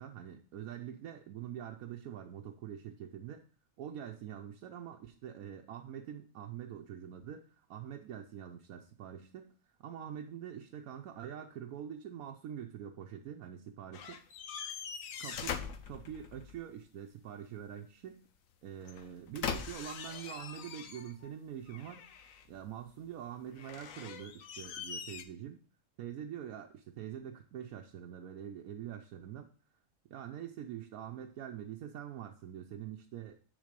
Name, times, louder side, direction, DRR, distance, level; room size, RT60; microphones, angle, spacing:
voice 1, 0.0-3.4 3.8-14.2 15.2-18.3 18.6-22.1 22.5-25.6 26.0-29.5 30.1-33.4, right 9 dB, 85° right, 3 dB, 1.1 m, -45 dB
sound 1, 13.9-16.6 18.8-21.3 21.7-22.6 23.5-25.2, left 7 dB, 75° left, 1.1 m, -42 dB
9.6 x 4.0 x 5.1 m, 0.43 s
omnidirectional pair, 1.5 m